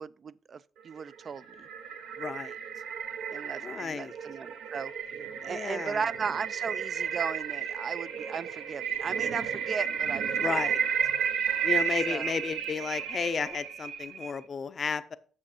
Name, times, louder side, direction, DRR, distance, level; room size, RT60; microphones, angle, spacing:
voice 1, 0.0-1.7 3.3-4.9 5.4-10.6 12.1-12.3, right 5 dB, 50° right, 0.4 m, -37 dB
sound 1, 1.0-14.4, right 8 dB, 85° right, 0.9 m, -32 dB
voice 2, 2.2-2.6 3.6-4.1 5.4-6.0 10.4-10.8 11.6-15.2, left 5 dB, 45° left, 0.6 m, -33 dB
7.5 x 6.0 x 4.3 m
cardioid pair, 75°, 0 cm